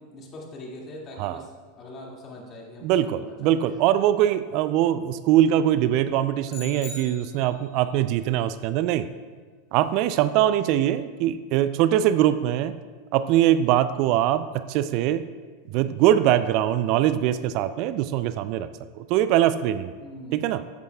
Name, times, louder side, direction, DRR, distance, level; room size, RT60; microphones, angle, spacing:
voice 1, 0.0-3.8 20.0-20.4, left 1 dB, 35° left, -2 dB, 2.1 m, -42 dB
voice 2, 2.8-9.1 9.7-12.7 13.1-15.3 15.7-18.7 18.9-19.9 20.3-20.6, right 12 dB, 55° right, 13 dB, 0.3 m, -22 dB
sound 1, 6.5-7.8, left 4 dB, 55° left, 2.5 m, -41 dB
11.0 x 8.3 x 2.3 m, 1.5 s
hypercardioid pair, 95°, 0 cm